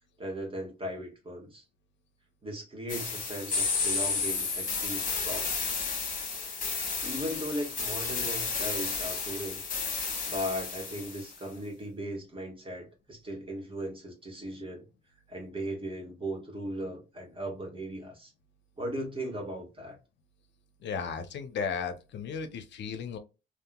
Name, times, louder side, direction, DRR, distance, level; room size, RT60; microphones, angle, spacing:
voice 1, 0.2-1.6 2.4-5.5 6.7-9.6 10.3-14.9 15.3-18.3 18.8-20.0, equal, 25° right, 1.5 m, -37 dB
sound 1, 2.9-11.3, left 4 dB, 40° left, 1.1 m, -32 dB
voice 2, 20.8-23.2, left 6 dB, 65° left, 0.5 m, -35 dB
3.6 x 2.4 x 2.2 m
cardioid pair, 90°, 20 cm